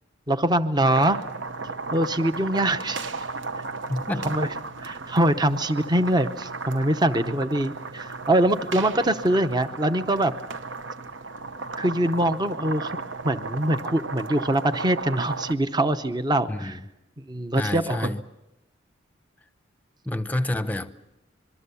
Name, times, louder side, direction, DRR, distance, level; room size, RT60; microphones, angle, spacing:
voice 1, 0.3-1.2 1.9-3.1 4.2-4.5 4.8-10.3 11.8-13.0 13.2-16.8 17.3-18.1, right 1 dB, 20° right, 0.8 m, -23 dB
sound 1, 0.9-15.5, right 3 dB, 70° right, 1.0 m, -35 dB
voice 2, 3.9-4.4 16.5-16.8 17.6-18.2 20.1-20.9, left 1 dB, 10° left, 0.8 m, -28 dB
25.5 x 23.0 x 7.0 m
head